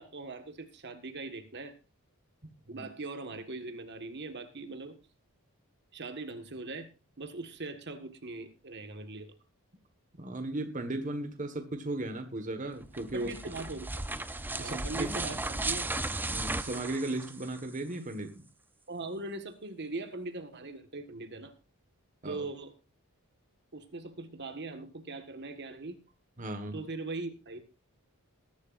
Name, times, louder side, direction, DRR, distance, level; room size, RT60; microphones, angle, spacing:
voice 1, 0.0-1.7 2.7-5.0 5.9-6.9 7.2-9.3 13.1-13.9 14.5-15.9 18.9-21.5 22.3-22.7 23.7-26.0 26.7-27.6, right 3 dB, 50° right, 7 dB, 1.7 m, -40 dB
voice 2, 10.2-13.3 14.6-15.1 16.3-18.5 22.2-22.5 26.4-26.8, right 2 dB, 35° right, 6 dB, 1.6 m, -36 dB
sound 1, 12.8-17.8, right 2 dB, 10° right, 0.6 m, -35 dB
21.0 x 11.5 x 2.6 m, 0.27 s
head